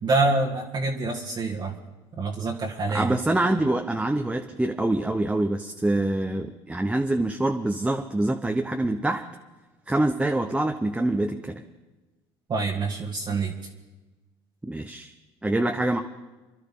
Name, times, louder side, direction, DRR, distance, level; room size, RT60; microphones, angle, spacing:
voice 1, 0.0-1.8 2.2-3.2 12.5-13.5, right 3 dB, 40° right, -2 dB, 1.6 m, -26 dB
voice 2, 2.9-9.2 9.9-11.6 14.6-15.1 15.4-16.0, right 1 dB, 10° right, 4 dB, 0.9 m, -25 dB
25.5 x 11.5 x 3.8 m, 1.1 s
supercardioid pair, 80°, 12 cm